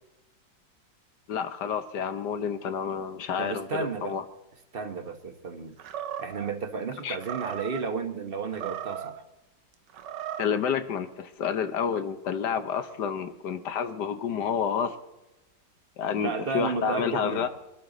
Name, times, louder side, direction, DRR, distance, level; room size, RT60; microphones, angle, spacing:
voice 1, 1.3-4.2 7.0-7.2 10.4-15.0 16.0-17.5, left 7 dB, 65° left, 10 dB, 1.4 m, -29 dB
voice 2, 3.4-4.2 4.7-5.7 6.2-9.1 16.2-17.5, right 5 dB, 35° right, 7 dB, 1.1 m, -33 dB
Animal, 5.8-6.5 7.2-7.8 8.5-9.2 9.9-10.6, right 10 dB, 70° right, 1.4 m, -36 dB
23.0 x 12.5 x 3.9 m, 1.0 s
omnidirectional pair, 2.0 m